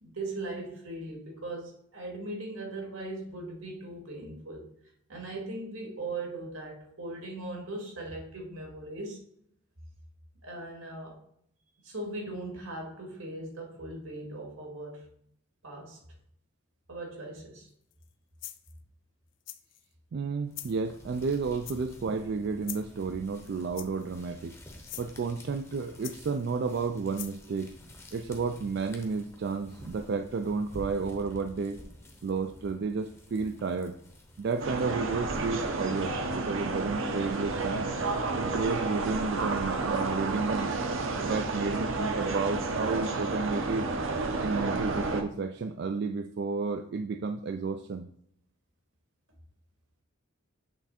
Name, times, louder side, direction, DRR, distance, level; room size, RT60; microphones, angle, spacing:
voice 1, 0.0-4.6 5.1-9.2 10.4-11.2 11.8-15.0 15.6-16.0 16.9-17.7, right 2 dB, 85° right, 0 dB, 2.1 m, -39 dB
sound 1, 17.9-18.1 18.4-18.8 19.5-19.8 20.5-20.8 21.6-22.1 22.6-23.0 23.7-24.2 24.8-25.1 26.0-26.5 27.1-27.4, left 14 dB, 60° left, 0.4 m, -42 dB
voice 2, 20.1-24.5 25.0-27.7 28.1-31.8 32.2-34.0 34.4-37.9 38.3-40.8 41.1-43.9 44.4-48.1, right 4 dB, 50° right, 7 dB, 0.3 m, -32 dB
sound 2, 20.4-34.9, equal, 10° left, 0.8 m, -50 dB
sound 3, 34.6-45.2, right 3 dB, 70° right, 0.8 m, -31 dB
8.3 x 3.4 x 4.2 m, 0.70 s
head